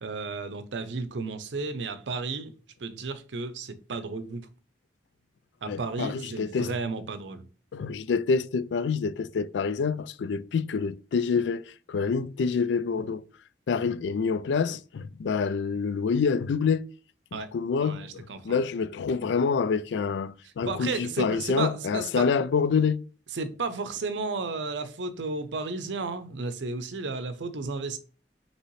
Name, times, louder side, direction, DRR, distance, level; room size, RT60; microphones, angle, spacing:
voice 1, 0.0-2.5 2.8-4.5 5.6-7.4 17.3-17.5 17.8-18.6 20.7-22.3 23.3-28.0, right 3 dB, 80° right, 0.6 m, -33 dB
voice 2, 5.7-6.7 7.7-13.2 13.7-16.9 17.3-23.0, left 5 dB, 75° left, 0.3 m, -27 dB
5.5 x 3.0 x 3.0 m
head